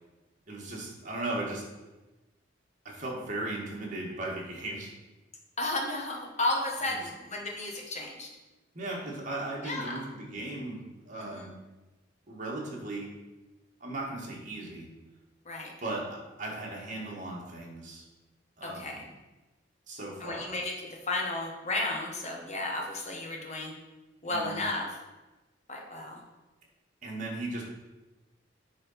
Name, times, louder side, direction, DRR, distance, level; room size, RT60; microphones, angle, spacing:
voice 1, 0.5-1.6 2.8-4.9 6.9-7.0 8.7-10.8 11.1-11.5 12.3-13.1 13.8-14.9 15.8-18.0 18.6-19.1 19.9-20.5 24.3-24.6 27.0-27.6, right 2 dB, 45° right, -3 dB, 2.0 m, -37 dB
voice 2, 5.6-8.3 9.6-10.0 11.3-11.5 15.4-15.7 18.6-19.0 20.2-23.7 24.2-24.9 25.7-26.2, left 2 dB, 40° left, 0 dB, 1.5 m, -33 dB
8.9 x 4.1 x 5.8 m, 1.1 s
head